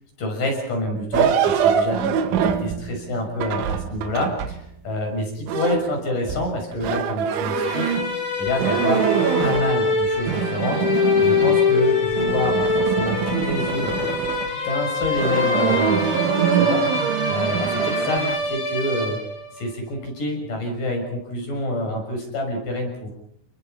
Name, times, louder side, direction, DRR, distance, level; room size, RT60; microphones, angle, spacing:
voice 1, 0.2-7.9 8.4-9.0 9.4-14.0 14.5-19.2 19.5-23.1, left 1 dB, 45° left, 2 dB, 8.0 m, -27 dB
sound 1, 1.1-4.7 5.5-8.2 8.5-9.7 10.0-11.8 12.1-14.5 15.0-18.4, right 8 dB, 80° right, 4.1 m, -24 dB
sound 2, 7.5-19.6, left 4 dB, 65° left, 8.2 m, -24 dB
30.0 x 21.0 x 5.8 m, 0.69 s
omnidirectional pair, 5.5 m